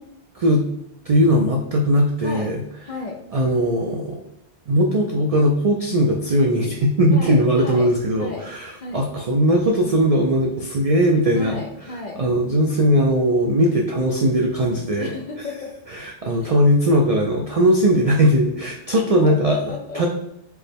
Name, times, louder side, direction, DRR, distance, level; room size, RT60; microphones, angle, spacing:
voice 1, 1.1-2.6 3.3-4.2 4.7-11.6 12.2-15.1 15.9-19.6 19.9-20.1, equal, 65° right, 0 dB, 0.3 m, -19 dB
voice 2, 2.8-3.2 7.1-7.9 8.2-9.1 11.3-12.2 15.0-15.7 16.4-16.5 18.9-20.1, left 3 dB, 60° left, 0 dB, 0.5 m, -33 dB
4.5 x 2.1 x 3.3 m, 0.78 s
omnidirectional pair, 1.2 m